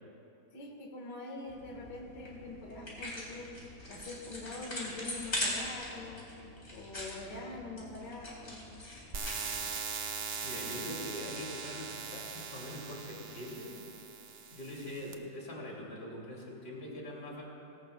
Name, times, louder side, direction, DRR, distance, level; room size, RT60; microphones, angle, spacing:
voice 1, 0.5-3.5 3.9-6.3 6.7-8.7, left 2 dB, 85° left, -1 dB, 2.1 m, -44 dB
sound 1, 1.5-9.7, left 1 dB, 40° left, 3.8 m, -41 dB
sound 2, 9.1-15.1, right 6 dB, 55° right, 1.0 m, -41 dB
voice 2, 10.4-13.8 14.5-17.4, left 1 dB, 65° left, -3 dB, 3.0 m, -43 dB
19.5 x 17.5 x 2.2 m, 2.9 s
omnidirectional pair, 1.8 m